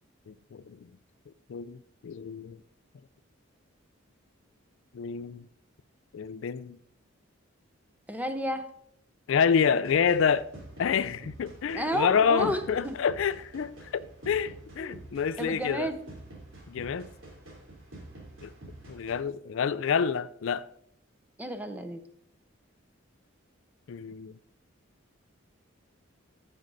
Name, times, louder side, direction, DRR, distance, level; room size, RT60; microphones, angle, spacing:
voice 1, 0.3-0.8 1.5-1.8 2.0-2.6 4.9-5.4 6.1-6.8 9.3-10.4 10.8-15.9 16.7-17.1 18.4-18.5 18.9-20.6 23.9-24.3, left 7 dB, 70° left, 0.4 m, -28 dB
voice 2, 8.1-8.7 11.7-13.0 14.8-15.0 15.4-16.0 21.4-22.0, equal, 5° right, 0.7 m, -31 dB
sound 1, 9.8-19.1, right 1 dB, 70° right, 3.3 m, -48 dB
14.0 x 6.2 x 4.0 m
head